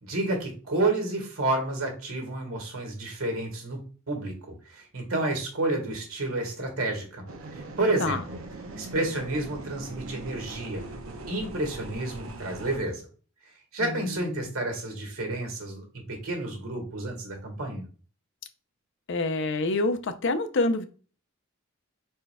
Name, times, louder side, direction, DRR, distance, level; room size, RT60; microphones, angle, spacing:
voice 1, 0.0-7.3 7.5-8.2 8.7-10.8 11.3-13.1 13.7-17.9, right 2 dB, 90° right, 3 dB, 1.7 m, -30 dB
sound 1, 7.3-12.8, right 2 dB, 70° right, 0.8 m, -41 dB
voice 2, 13.8-14.5 19.1-20.8, left 2 dB, 60° left, 8 dB, 0.6 m, -27 dB
4.9 x 4.3 x 2.2 m, 0.38 s
head